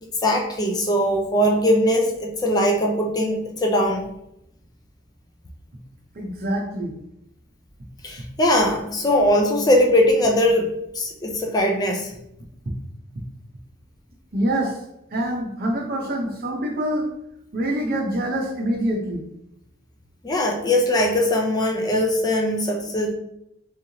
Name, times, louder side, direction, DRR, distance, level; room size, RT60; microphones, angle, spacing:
voice 1, 0.0-4.1 8.0-12.1 20.2-23.1, left 1 dB, 20° left, 1 dB, 0.5 m, -21 dB
voice 2, 6.1-6.9 14.3-14.8 15.1-17.1 17.5-19.3, right 1 dB, 50° right, 1 dB, 0.8 m, -25 dB
3.5 x 3.3 x 2.7 m, 0.80 s
head